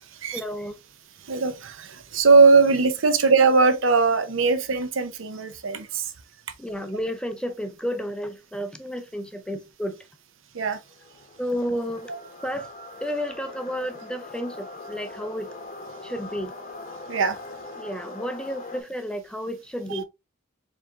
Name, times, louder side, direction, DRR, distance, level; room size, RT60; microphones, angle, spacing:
voice 1, 0.3-0.7 6.6-10.0 11.4-12.1 12.4-12.7 13.0-15.5 16.0-16.5 17.8-20.0, equal, 5° left, 0.4 m, -31 dB
voice 2, 1.2-6.1 10.5-10.8 17.1-17.4 19.9-20.0, right 4 dB, 70° right, 0.7 m, -20 dB
sound 1, 10.7-18.8, left 2 dB, 40° left, 0.9 m, -41 dB
4.7 x 3.6 x 2.4 m
head